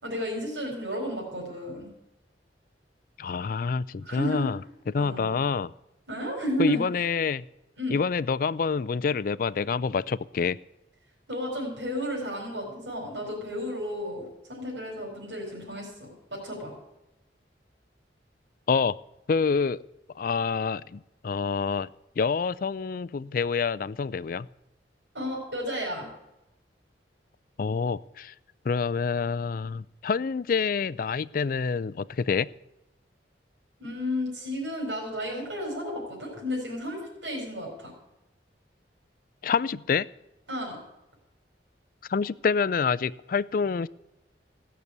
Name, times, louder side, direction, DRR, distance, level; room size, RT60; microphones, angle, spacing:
voice 1, 0.0-1.9 4.0-4.5 4.9-5.4 6.1-6.9 7.8-8.0 11.3-16.7 25.1-26.1 33.8-37.9 40.5-40.8, equal, 80° right, -2 dB, 4.7 m, -33 dB
voice 2, 3.2-4.6 4.9-5.7 6.6-7.4 7.9-10.6 18.7-19.0 19.3-19.8 20.2-21.9 22.2-24.5 27.6-28.3 28.7-32.5 39.4-40.1 42.1-43.9, left 5 dB, 50° left, 19 dB, 0.4 m, -27 dB
16.5 x 6.9 x 8.0 m, 0.93 s
head